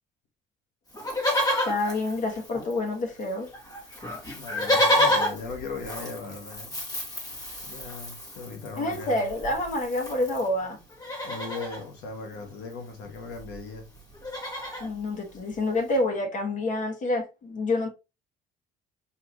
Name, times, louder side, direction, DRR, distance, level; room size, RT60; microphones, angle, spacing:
Livestock farm animals working animals, 0.9-2.9 3.2-3.3 3.5-10.5 10.9-11.8 13.0-13.1 13.3-13.6 13.9-14.9 15.5-15.6, left 1 dB, 20° left, 1.4 m, -29 dB
voice 1, 1.7-3.5 8.8-10.8 14.8-17.9, left 2 dB, 50° left, 1.3 m, -28 dB
voice 2, 4.3-6.7 7.6-9.3 11.2-13.9, left 4 dB, 90° left, 1.3 m, -38 dB
4.3 x 2.8 x 2.9 m
cardioid pair, 110°, 17 cm